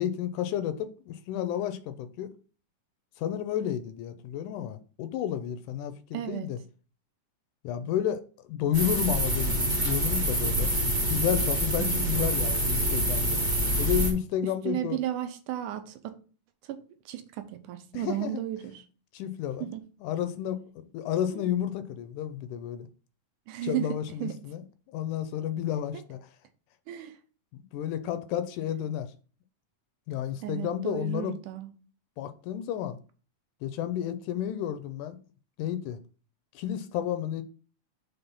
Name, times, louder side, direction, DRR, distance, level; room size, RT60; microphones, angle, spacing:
voice 1, 0.0-2.3 3.2-6.6 7.6-8.2 8.5-13.4 13.8-15.0 17.9-18.4 19.1-19.7 20.0-22.9 23.6-24.6 24.9-26.2 27.7-29.1 30.1-31.4 32.2-33.0 33.6-35.2 35.6-36.0 36.6-37.4, left 10 dB, 80° left, 2.0 m, -31 dB
voice 2, 6.1-6.5 11.8-12.5 14.4-16.2 16.7-18.8 19.6-19.8 21.3-21.5 23.5-24.4 26.9-27.2 30.4-31.7, right 12 dB, 80° right, 2.2 m, -34 dB
sound 1, 8.7-14.1, right 1 dB, 25° right, 1.0 m, -26 dB
5.8 x 3.7 x 5.3 m
omnidirectional pair, 3.7 m